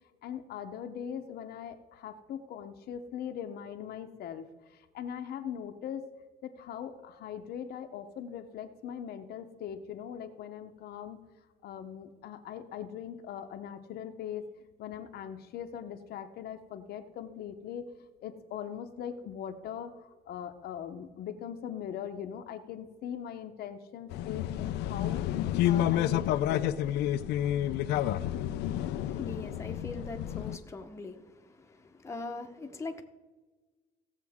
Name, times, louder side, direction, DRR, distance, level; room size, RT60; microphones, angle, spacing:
voice 1, 0.2-6.1 6.4-11.2 11.6-14.5 14.8-17.9 18.2-26.8, left 9 dB, 70° left, 6 dB, 0.9 m, -41 dB
sound 1, 24.1-30.6, left 12 dB, 85° left, 0.5 m, -30 dB
voice 2, 28.5-33.0, left 2 dB, 15° left, 3 dB, 1.0 m, -42 dB
16.5 x 7.3 x 3.6 m, 1.3 s
cardioid pair, 110°, 17 cm